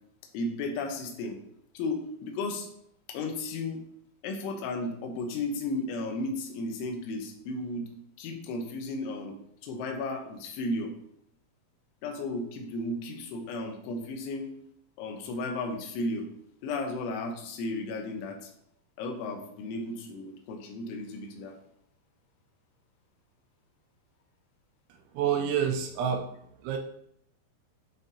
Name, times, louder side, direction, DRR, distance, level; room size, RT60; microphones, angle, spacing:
voice 1, 0.3-1.4 1.7-2.7 3.1-3.8 4.2-7.9 8.2-9.4 9.6-10.9 12.0-14.5 15.0-16.3 16.6-18.5 19.0-21.6, left 2 dB, 80° left, 3 dB, 3.2 m, -34 dB
voice 2, 25.1-26.3 26.6-26.8, right 8 dB, 85° right, 4 dB, 2.8 m, -28 dB
10.5 x 3.8 x 2.7 m, 0.70 s
omnidirectional pair, 5.6 m